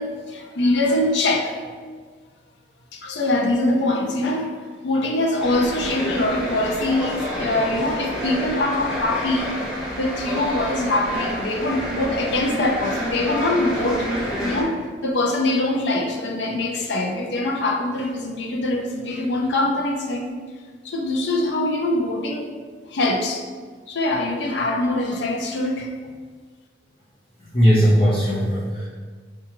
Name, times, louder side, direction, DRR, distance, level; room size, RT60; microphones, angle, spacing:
voice 1, 0.0-1.6 2.9-4.6 4.8-9.5 10.0-14.1 14.4-20.3 20.8-22.5 22.9-23.4 23.9-25.9, left 2 dB, 70° left, 1 dB, 0.5 m, -23 dB
sound 1, 5.4-14.6, equal, 5° right, 0.8 m, -29 dB
voice 2, 27.5-28.8, equal, 35° left, -10 dB, 0.9 m, -18 dB
4.5 x 2.3 x 3.0 m, 1.5 s
head